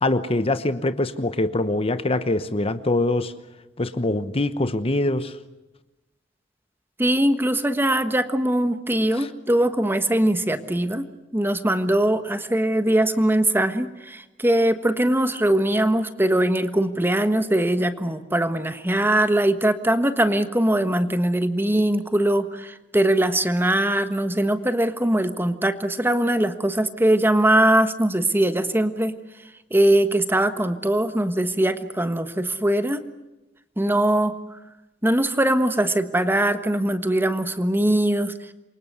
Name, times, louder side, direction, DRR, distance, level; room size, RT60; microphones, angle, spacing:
voice 1, 0.0-3.3 3.8-5.3 9.1-9.3, left 2 dB, 30° left, 12 dB, 1.0 m, -23 dB
voice 2, 7.0-11.0 11.3-29.1 29.7-33.0 33.8-34.3 35.0-38.3, right 1 dB, 10° right, 10 dB, 1.3 m, -21 dB
28.0 x 24.0 x 8.1 m, 1.0 s
head